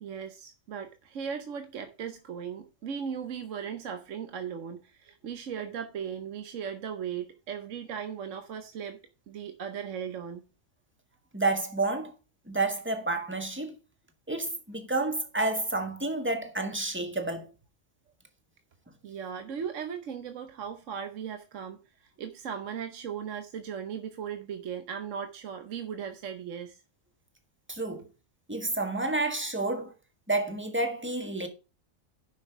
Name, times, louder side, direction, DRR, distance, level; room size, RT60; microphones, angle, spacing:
voice 1, 0.0-9.0 9.3-10.4 19.0-26.8, right 7 dB, 65° right, 1.2 m, -37 dB
voice 2, 11.3-12.1 12.5-13.7 14.3-17.5 27.7-28.0 28.5-29.9 30.3-31.5, right 2 dB, 10° right, 1.6 m, -30 dB
10.0 x 6.0 x 4.5 m
omnidirectional pair, 1.4 m